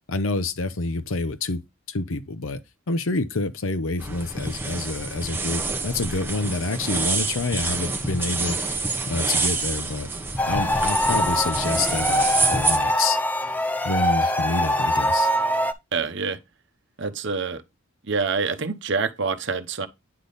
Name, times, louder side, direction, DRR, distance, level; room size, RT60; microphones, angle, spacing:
voice 1, 0.1-1.6 1.9-2.6 2.9-8.6 9.1-10.1 10.5-13.2 13.8-15.3, left 3 dB, 75° left, 0.7 m, -27 dB
sound 1, 4.0-12.8, right 3 dB, 10° right, 0.9 m, -27 dB
sound 2, 10.4-15.7, equal, 10° left, 0.5 m, -23 dB
voice 2, 15.9-16.4 17.0-17.6 18.0-19.9, right 4 dB, 60° right, 0.9 m, -26 dB
9.6 x 3.4 x 4.0 m
head